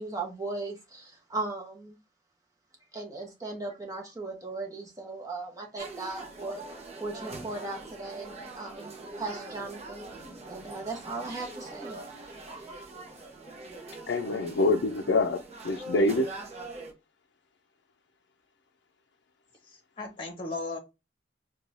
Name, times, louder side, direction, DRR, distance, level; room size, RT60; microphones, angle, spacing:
voice 1, 0.0-2.0 2.9-6.6 7.0-10.0 10.4-12.9, right 3 dB, 20° right, 1.0 m, -38 dB
sound 1, 5.8-16.9, right 2 dB, 35° right, 0.7 m, -43 dB
voice 2, 14.1-16.3, left 2 dB, 85° left, 0.4 m, -26 dB
voice 3, 19.7-20.8, left 3 dB, 30° left, 1.1 m, -36 dB
4.5 x 2.3 x 2.5 m
head